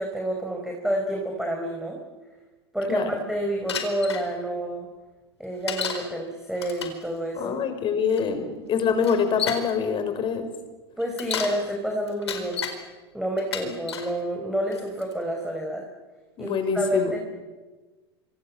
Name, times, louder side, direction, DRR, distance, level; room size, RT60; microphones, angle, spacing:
voice 1, 0.0-2.0 2.7-4.9 5.4-7.6 11.0-12.6 13.1-15.8 16.4-17.2, right 1 dB, 5° right, 1 dB, 4.9 m, -29 dB
Bicycle, 3.7-4.2 5.7-6.1 6.5-7.0 8.1-8.2 9.0-9.7 11.0-11.6 12.1-12.8 13.4-14.1 14.7-15.1, left 7 dB, 85° left, 4.5 m, -31 dB
voice 2, 7.4-10.5 13.6-13.7 16.4-17.2, left 6 dB, 35° left, 8 dB, 5.5 m, -25 dB
27.0 x 26.0 x 7.5 m, 1.3 s
hypercardioid pair, 95°, 14 cm